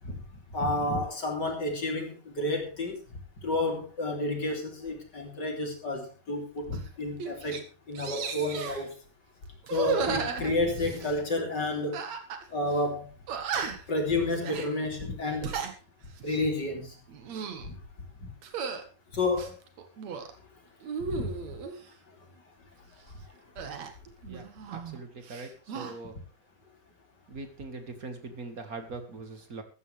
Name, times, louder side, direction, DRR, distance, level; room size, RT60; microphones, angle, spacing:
voice 1, 0.5-3.0 3.4-8.9 9.7-12.0 12.5-13.1 13.9-15.5 16.2-16.9 17.6-17.7 19.1-19.5 21.1-21.3, left 2 dB, 30° left, 3 dB, 3.3 m, -30 dB
sound 1, 6.7-6.9 7.2-7.6 8.0-8.8 9.6-11.2 11.9-12.4 12.7-12.8 13.3-13.9 14.4-14.7 15.3-15.7 16.2-16.5 17.1-17.7 18.4-18.8 19.3-20.3 20.8-21.8 23.6-25.0 25.2-25.9, right 6 dB, 55° right, 2.6 m, -35 dB
voice 2, 24.1-24.5 24.7-26.2 27.3-29.6, right 3 dB, 35° right, 7 dB, 1.5 m, -42 dB
15.0 x 14.0 x 3.4 m, 0.34 s
omnidirectional pair, 4.1 m